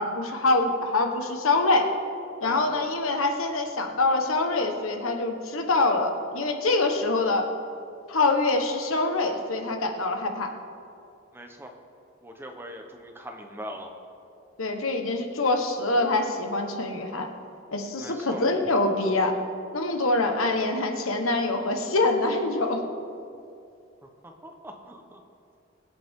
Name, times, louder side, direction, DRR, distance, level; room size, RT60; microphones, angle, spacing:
voice 1, 0.0-1.9 2.4-7.5 8.1-10.5 14.6-17.3 17.7-19.3 19.7-22.8, left 2 dB, 85° left, 4 dB, 1.4 m, -25 dB
voice 2, 2.4-2.8 11.3-11.7 12.2-13.9 18.0-18.4 24.2-25.2, equal, 10° right, 3 dB, 1.0 m, -41 dB
23.5 x 8.6 x 3.8 m, 2.6 s
head